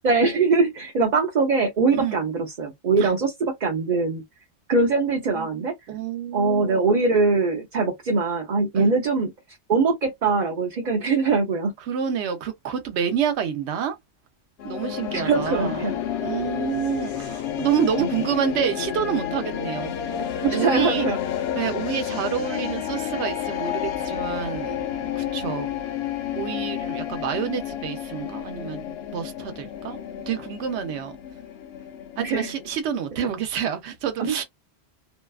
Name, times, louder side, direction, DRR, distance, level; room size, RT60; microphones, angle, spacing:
voice 1, 0.0-4.2 4.7-5.7 6.3-9.3 9.7-11.7 15.1-15.9 18.0-18.1 20.4-21.2 32.2-32.5 34.2-34.4, right 4 dB, 50° right, 0.7 m, -22 dB
voice 2, 5.3-6.9 8.7-8.8 11.8-14.0 14.6-15.8 16.2-20.3 20.5-21.1 21.5-25.7 26.3-30.0 30.3-31.2 32.2-34.4, right 8 dB, 80° right, 0.9 m, -28 dB
sound 1, 14.6-32.8, left 9 dB, 70° left, 0.8 m, -30 dB
2.7 x 2.2 x 2.3 m
omnidirectional pair, 1.1 m